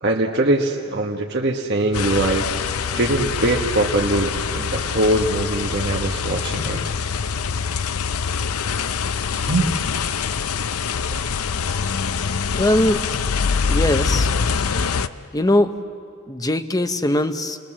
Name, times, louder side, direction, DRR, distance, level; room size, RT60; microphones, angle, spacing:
voice 1, 0.0-2.4 2.9-6.8 9.5-9.7 11.1-11.3, right 2 dB, 50° right, -1 dB, 1.3 m, -22 dB
sound 1, 1.9-15.1, left 5 dB, 85° left, 0.6 m, -24 dB
voice 2, 12.5-13.0 13.7-14.3 15.3-15.8 16.3-17.6, left 1 dB, 15° left, 8 dB, 0.9 m, -20 dB
29.5 x 22.0 x 7.5 m, 2.2 s
head